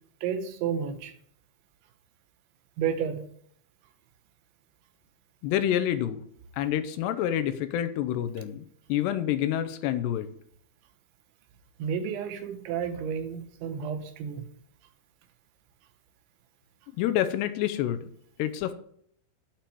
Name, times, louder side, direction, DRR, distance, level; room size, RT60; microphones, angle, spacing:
voice 1, 0.2-1.1 2.8-3.3 11.8-14.5, right 7 dB, 85° right, 3.4 m, -31 dB
voice 2, 5.4-6.2 6.5-10.3 17.0-18.0 18.4-18.7, left 11 dB, 80° left, 2.7 m, -28 dB
8.4 x 5.8 x 7.5 m
omnidirectional pair, 5.1 m